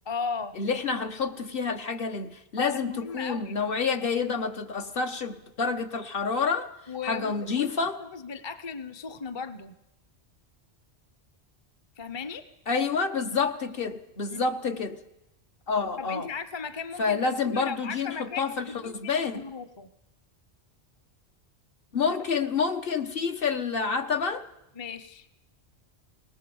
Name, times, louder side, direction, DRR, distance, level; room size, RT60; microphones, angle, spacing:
voice 1, 0.1-0.6 2.6-3.5 6.9-9.8 12.0-12.5 14.3-14.4 16.0-19.9 22.1-22.2 24.8-25.3, left 5 dB, 30° left, 0.7 m, -37 dB
voice 2, 0.6-6.7 7.0-8.0 12.7-15.0 15.7-16.3 17.0-19.4 21.9-24.5, left 5 dB, 55° left, 1.3 m, -28 dB
20.0 x 20.0 x 7.0 m
omnidirectional pair, 1.1 m